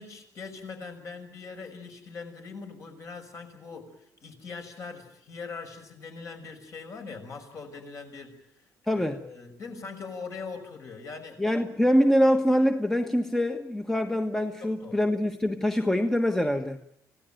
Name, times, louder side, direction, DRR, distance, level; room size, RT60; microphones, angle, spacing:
voice 1, 0.0-8.4 8.9-11.4 14.6-15.0, left 4 dB, 50° left, 4 dB, 6.2 m, -41 dB
voice 2, 8.9-9.2 11.4-16.8, equal, 5° left, 6 dB, 1.4 m, -24 dB
28.0 x 17.0 x 9.2 m, 0.75 s
cardioid pair, 130°, 7 cm